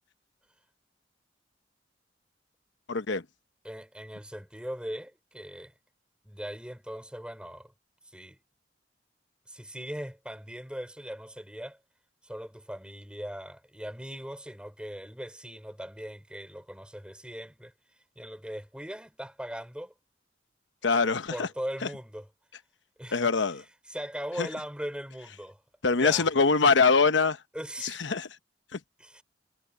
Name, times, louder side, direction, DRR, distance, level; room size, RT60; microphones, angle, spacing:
voice 1, 2.9-3.2 20.8-21.5 21.8-21.9 23.1-23.6 24.4-24.5 25.8-27.4 27.8-28.3 28.7-28.8, left 4 dB, 90° left, 1.0 m, -24 dB
voice 2, 3.6-5.7 6.2-7.7 8.1-8.4 9.5-11.8 12.2-17.7 18.2-19.9 21.3-22.3 23.0-23.3 23.9-25.6 26.0-26.3 27.5-28.0 29.0-29.2, equal, 5° right, 4.5 m, -39 dB
head